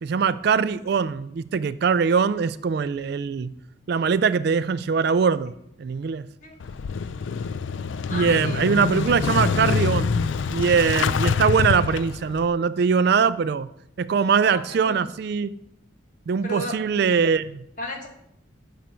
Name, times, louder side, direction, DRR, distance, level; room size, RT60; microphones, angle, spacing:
voice 1, 0.0-3.5 3.9-5.5 5.8-6.3 8.1-10.2 10.5-13.7 14.0-15.5 16.3-17.6, right 6 dB, 55° right, 15 dB, 0.3 m, -22 dB
Motorcycle / Engine starting, 6.6-12.5, left 5 dB, 70° left, 0.4 m, -25 dB
voice 2, 8.1-8.6 14.5-15.0 16.4-17.1 17.8-18.1, left 1 dB, 40° left, 3 dB, 1.5 m, -34 dB
11.5 x 6.1 x 4.4 m, 0.78 s
head